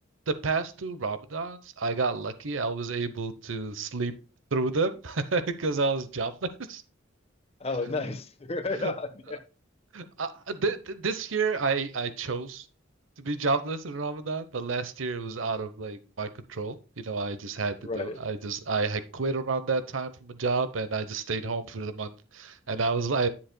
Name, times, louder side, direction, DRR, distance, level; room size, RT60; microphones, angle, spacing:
voice 1, 0.3-4.1 4.5-6.8 8.7-8.9 9.9-12.6 13.2-23.3, right 4 dB, 80° right, 0.9 m, -30 dB
voice 2, 7.6-9.4 17.8-18.2, left 3 dB, 30° left, 1.1 m, -32 dB
10.5 x 7.3 x 2.2 m
head